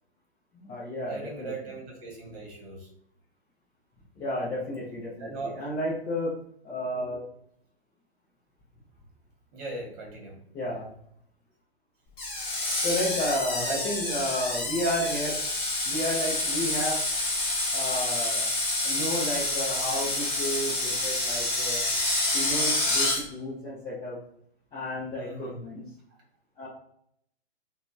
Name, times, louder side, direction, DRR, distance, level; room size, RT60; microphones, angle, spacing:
voice 1, 0.5-1.5 4.2-6.3 6.6-7.2 10.5-10.9 12.8-15.4 15.9-17.0 17.7-18.5 18.8-21.8 22.3-24.2 24.7-25.9 26.6-26.7, left 1 dB, 15° left, -8 dB, 0.5 m, -32 dB
voice 2, 1.0-2.9 5.2-5.7 9.5-10.4 13.5-13.8 25.2-25.6, right 3 dB, 40° right, -1 dB, 1.2 m, -38 dB
Screech, 12.2-23.2, left 2 dB, 30° left, 1.3 m, -28 dB
2.7 x 2.3 x 2.6 m, 0.68 s
hypercardioid pair, 125°, 32 cm